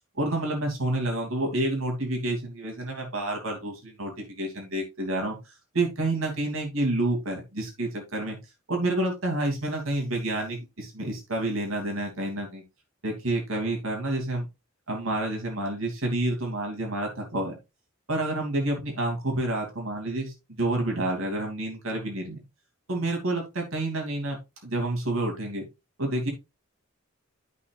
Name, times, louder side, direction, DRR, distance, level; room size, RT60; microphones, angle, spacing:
voice 1, 0.2-8.4 8.7-12.6 13.0-14.5 14.9-17.5 18.1-22.4 22.9-25.6 26.0-26.3, right 1 dB, 80° right, 2 dB, 2.9 m, -29 dB
13.0 x 5.7 x 2.5 m, 0.24 s
head